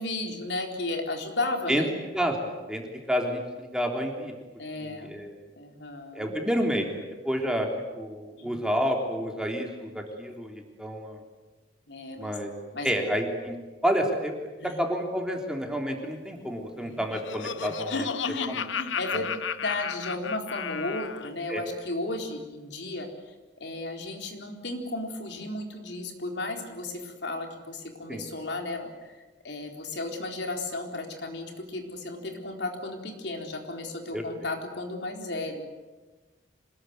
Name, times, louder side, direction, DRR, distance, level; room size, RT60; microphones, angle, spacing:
voice 1, 0.0-1.9 4.6-5.1 5.6-6.4 8.4-8.5 11.9-12.3 12.7-12.9 14.6-14.7 17.6-23.1 23.6-35.7, left 2 dB, 65° left, 3 dB, 4.1 m, -34 dB
voice 2, 3.1-3.4 3.7-4.3 4.8-5.4 6.1-7.7 7.9-11.2 12.2-12.5 12.8-13.6 13.8-18.1 18.5-18.6 19.1-19.2 21.5-21.6 28.1-28.3 34.1-34.2, equal, 5° right, 1 dB, 3.4 m, -29 dB
Laughter, 16.8-21.3, left 7 dB, 85° left, 0.9 m, -34 dB
27.0 x 20.5 x 9.5 m, 1.2 s
head